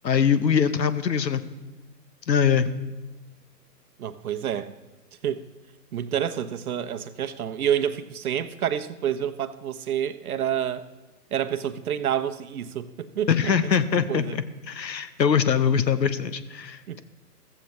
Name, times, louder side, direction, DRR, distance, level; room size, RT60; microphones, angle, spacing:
voice 1, 0.0-1.4 2.3-2.7 13.3-17.0, left 7 dB, 80° left, 13 dB, 1.1 m, -23 dB
voice 2, 4.0-4.7 5.2-5.4 5.9-10.8 11.3-13.3 13.9-14.4 16.9-17.0, right 9 dB, 60° right, 11 dB, 0.9 m, -28 dB
14.5 x 14.5 x 3.2 m, 1.1 s
hypercardioid pair, 140°, 50 cm